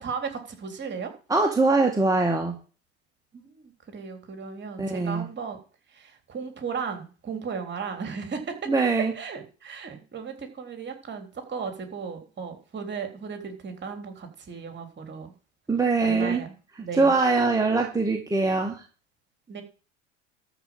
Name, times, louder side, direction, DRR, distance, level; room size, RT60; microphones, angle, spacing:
voice 1, 0.0-1.1 3.3-5.6 5.9-8.6 8.9-15.3 16.0-16.5 16.8-17.1 19.5-19.6, right 6 dB, 30° right, 6 dB, 3.5 m, -36 dB
voice 2, 1.3-2.6 4.8-5.2 8.7-9.1 15.7-16.4 16.9-18.8, right 3 dB, 10° right, 2 dB, 2.1 m, -22 dB
13.0 x 5.0 x 7.4 m, 0.37 s
figure-of-eight pair, 75°, 37 cm